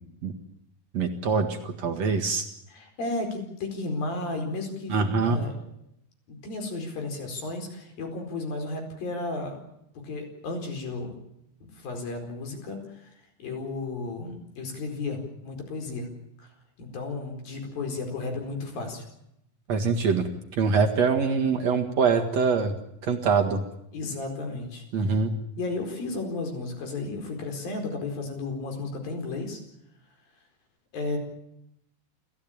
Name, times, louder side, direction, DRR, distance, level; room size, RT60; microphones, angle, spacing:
voice 1, 0.9-2.5 4.9-5.4 19.7-22.7 23.0-23.6 24.9-25.3, right 5 dB, 55° right, 3 dB, 2.7 m, -24 dB
voice 2, 2.7-5.5 6.3-9.6 10.0-11.2 11.6-13.1 13.4-16.1 16.4-16.5 16.8-19.0 23.9-25.2 25.6-29.6 30.9-31.2, left 3 dB, 75° left, 4 dB, 6.4 m, -33 dB
29.0 x 14.5 x 8.8 m, 0.80 s
omnidirectional pair, 4.1 m